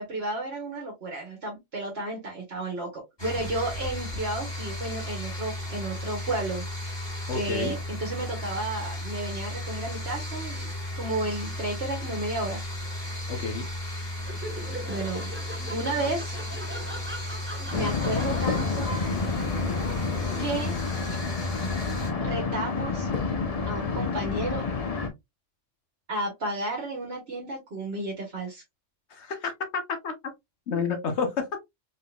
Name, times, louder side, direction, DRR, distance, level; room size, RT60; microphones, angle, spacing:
voice 1, 0.0-6.6 7.3-10.7 10.9-12.6 14.9-15.3 15.7-16.3 17.7-18.9 20.4-20.7 22.2-23.1 23.6-24.6 26.1-28.6, right 2 dB, 55° right, 1.5 m, -32 dB
sound 1, 3.2-22.1, left 1 dB, 20° left, 1.7 m, -34 dB
voice 2, 7.3-7.8 13.3-13.6 29.1-30.1 30.7-31.5, left 5 dB, 65° left, 1.2 m, -29 dB
Laughter, 14.2-20.8, right 1 dB, 15° right, 0.6 m, -41 dB
sound 2, 17.7-25.1, left 4 dB, 35° left, 0.7 m, -29 dB
4.0 x 3.7 x 2.3 m
omnidirectional pair, 1.3 m